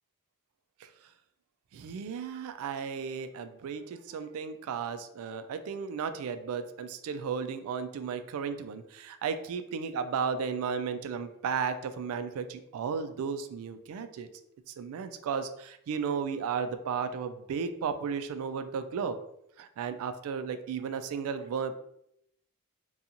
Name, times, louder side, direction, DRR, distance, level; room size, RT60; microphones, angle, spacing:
voice 1, 1.7-14.3 14.7-19.2 19.6-21.8, right 6 dB, 70° right, 13 dB, 0.3 m, -34 dB
2.8 x 2.3 x 2.5 m, 0.78 s
head